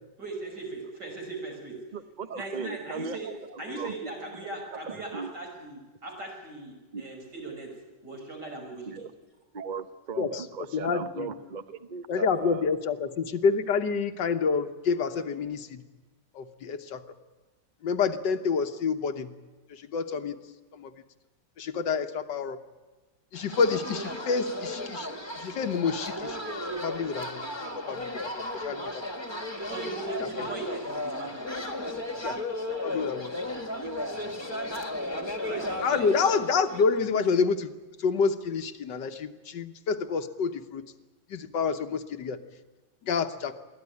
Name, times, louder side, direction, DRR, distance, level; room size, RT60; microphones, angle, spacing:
voice 1, 0.2-1.8 2.3-3.3 3.6-7.7 8.0-8.9 29.7-31.5 32.9-33.0 34.0-34.3 35.1-36.2, right 2 dB, 70° right, 0 dB, 6.7 m, -39 dB
voice 2, 1.9-4.1 4.7-5.3 6.9-7.0 8.9-9.1 9.5-12.7, right 5 dB, 40° right, 10 dB, 0.6 m, -38 dB
voice 3, 10.7-11.3 12.1-15.8 16.3-17.0 17.8-19.3 19.7-20.4 20.7-20.9 21.6-22.6 23.3-25.1 25.3-26.4 26.7-27.4 27.7-29.0 30.2-30.3 32.2-32.4 32.8-33.3 35.8-37.7 38.0-40.8 41.3-42.4 43.0-43.5, left 5 dB, 75° left, 8 dB, 1.8 m, -28 dB
sound 1, 23.3-37.0, left 1 dB, 15° left, 1.6 m, -35 dB
23.5 x 16.0 x 9.8 m, 1.2 s
omnidirectional pair, 1.9 m